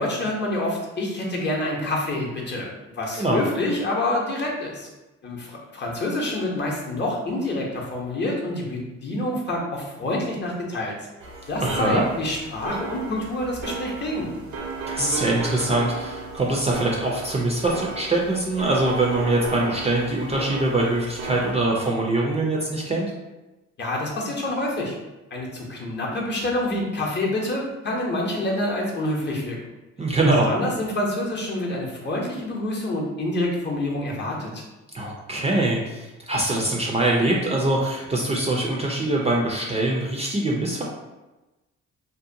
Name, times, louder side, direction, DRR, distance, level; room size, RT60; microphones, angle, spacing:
voice 1, 0.0-4.9 5.2-10.9 11.5-14.3 23.8-24.9 25.3-29.6 30.4-34.6, left 1 dB, 35° left, -2 dB, 0.7 m, -27 dB
sound 1, 11.2-21.5, right 3 dB, 70° right, 0.6 m, -34 dB
voice 2, 11.6-12.0 14.9-23.1 30.0-30.5 34.9-40.8, right 2 dB, 20° right, -2 dB, 0.4 m, -23 dB
2.7 x 2.1 x 2.6 m, 1.1 s
cardioid pair, 90°, 30 cm